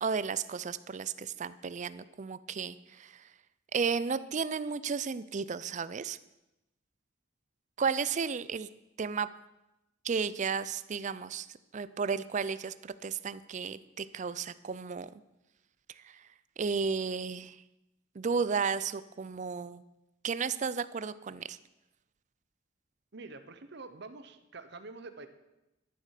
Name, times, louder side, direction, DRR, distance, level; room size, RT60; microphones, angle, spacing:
voice 1, 0.0-3.3 3.7-6.2 7.8-8.7 9.0-9.3 10.0-11.5 11.7-15.1 16.0-16.3 16.6-17.6 18.1-19.8 20.2-21.6, right 5 dB, 40° right, 15 dB, 0.4 m, -33 dB
voice 2, 23.1-25.3, right 3 dB, 60° right, 9 dB, 1.0 m, -46 dB
12.5 x 7.5 x 6.6 m, 0.95 s
head